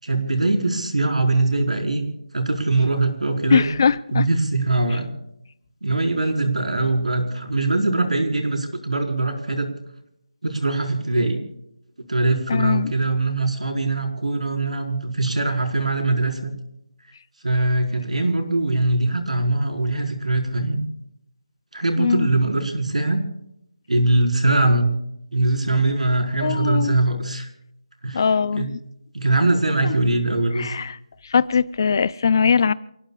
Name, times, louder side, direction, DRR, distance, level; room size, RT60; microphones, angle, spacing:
voice 1, 0.0-2.0 2.3-3.6 4.1-5.1 5.8-9.7 10.4-11.4 12.1-16.5 17.4-20.8 21.7-23.2 23.9-24.9 25.3-27.5 28.0-28.2 28.6-28.7 29.1-30.7, right 2 dB, 90° right, 3 dB, 4.9 m, -22 dB
voice 2, 3.5-4.3 12.5-12.9 22.0-22.3 26.4-27.0 28.1-28.8 29.8-30.0 30.6-31.0 31.2-32.7, left 6 dB, 35° left, 19 dB, 0.6 m, -21 dB
28.5 x 18.5 x 2.5 m, 0.79 s
figure-of-eight pair, 170°, 4 cm